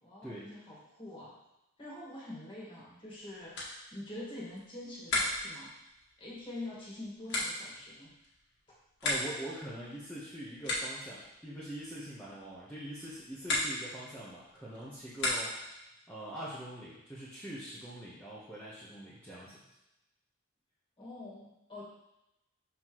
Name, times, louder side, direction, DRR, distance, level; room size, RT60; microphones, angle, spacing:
voice 1, 0.0-1.3 1.8-5.7 6.2-8.1 21.0-21.8, left 1 dB, 25° left, -6 dB, 1.9 m, -45 dB
sound 1, 3.0-15.8, left 2 dB, 55° left, 1.6 m, -39 dB
voice 2, 9.0-15.6 16.1-19.6, right 1 dB, 5° left, -10 dB, 1.1 m, -43 dB
6.2 x 5.8 x 3.1 m, 0.90 s
head